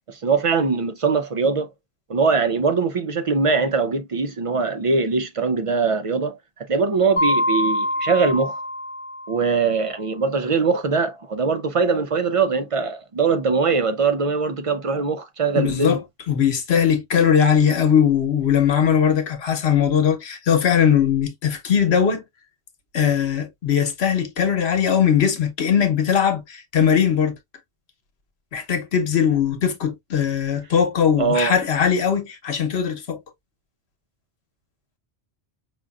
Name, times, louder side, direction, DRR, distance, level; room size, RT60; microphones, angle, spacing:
voice 1, 0.1-1.7 2.1-8.6 9.3-16.0 31.2-31.6, right 4 dB, 55° right, 0.3 m, -22 dB
Mallet percussion, 7.2-9.8, left 1 dB, 55° left, 1.0 m, -25 dB
voice 2, 15.5-16.0 16.3-22.2 22.9-27.4 28.5-33.2, left 8 dB, 75° left, 1.2 m, -20 dB
5.1 x 2.4 x 2.3 m
omnidirectional pair, 1.1 m